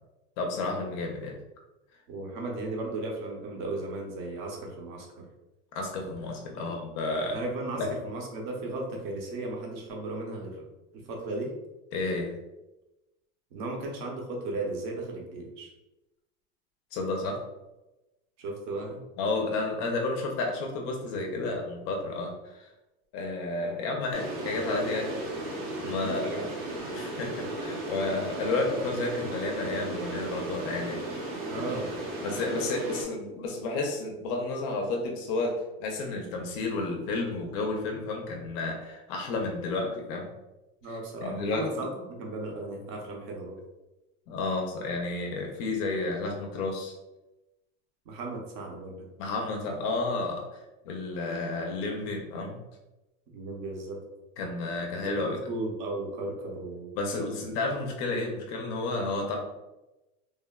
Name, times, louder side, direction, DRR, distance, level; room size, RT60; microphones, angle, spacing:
voice 1, 0.4-1.4 5.7-7.4 7.8-7.9 11.9-12.4 16.9-17.4 19.2-22.7 23.1-25.1 25.8-26.5 26.9-31.3 31.6-31.7 32.2-40.3 40.9-41.9 44.3-46.9 49.2-50.4 50.8-52.6 54.4-55.4 56.9-59.4, left 3 dB, 45° left, 1 dB, 0.4 m, -31 dB
voice 2, 2.1-5.1 6.6-6.8 7.3-10.6 11.1-11.5 13.5-15.7 18.4-19.0 26.0-26.5 31.5-32.0 40.8-43.6 48.1-49.1 53.3-54.0 55.2-57.4, right 2 dB, 45° right, 0 dB, 0.6 m, -36 dB
sound 1, 24.1-33.0, right 2 dB, 80° right, 0.9 m, -35 dB
3.2 x 2.1 x 2.2 m, 1.0 s
cardioid pair, 170°, 30 cm